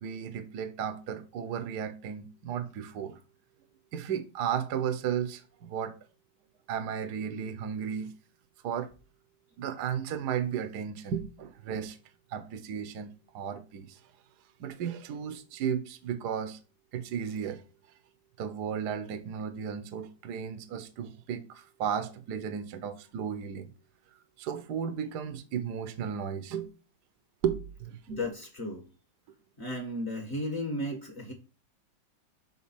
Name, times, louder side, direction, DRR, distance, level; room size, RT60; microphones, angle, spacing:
voice 1, 0.0-3.2 3.9-6.0 6.7-8.1 8.6-8.9 9.6-12.0 12.3-14.0 14.6-16.6 16.9-17.6 18.4-23.7 24.4-26.7 27.4-28.2, right 8 dB, 65° right, 1.3 m, -34 dB
voice 2, 28.1-28.8 29.6-31.3, left 1 dB, 35° left, 1.6 m, -34 dB
7.4 x 3.8 x 5.8 m
omnidirectional pair, 2.1 m